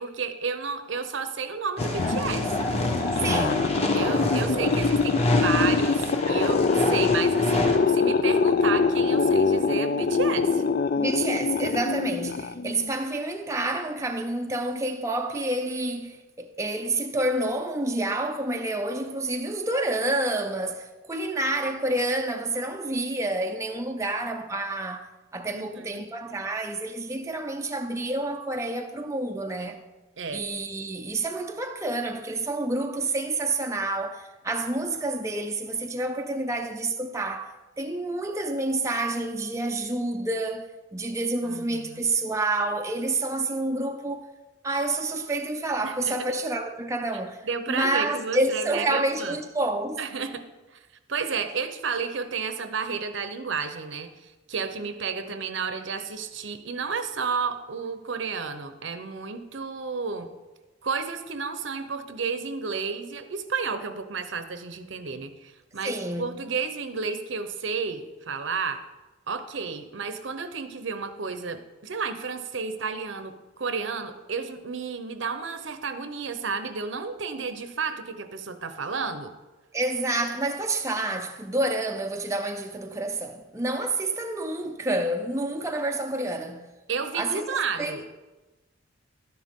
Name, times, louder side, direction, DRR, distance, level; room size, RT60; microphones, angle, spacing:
voice 1, 0.0-2.7 3.9-10.6 25.5-26.0 30.2-30.4 41.4-42.0 45.8-46.3 47.4-49.4 50.0-50.4 51.1-60.3 60.8-68.8 69.3-79.3 86.9-88.0, right 5 dB, 65° right, 0.8 m, -32 dB
sound 1, 1.8-12.9, left 4 dB, 45° left, 0.4 m, -24 dB
sound 2, 1.8-7.8, left 1 dB, 30° left, 1.3 m, -27 dB
voice 2, 3.1-3.7 10.9-29.8 30.3-44.3 44.6-50.0 65.8-66.3 79.7-86.7 87.1-88.0, right 2 dB, 15° right, 0.5 m, -29 dB
12.5 x 10.5 x 3.7 m
head